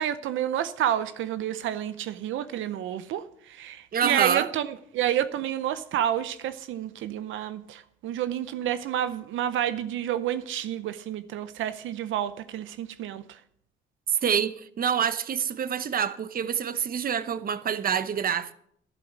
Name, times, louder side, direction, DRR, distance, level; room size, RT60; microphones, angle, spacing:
voice 1, 0.0-13.4, right 11 dB, 80° right, 0.7 m, -29 dB
voice 2, 3.9-4.5 14.1-18.5, right 8 dB, 45° right, 0.9 m, -26 dB
12.0 x 11.0 x 6.2 m
cardioid pair, 90°, 20 cm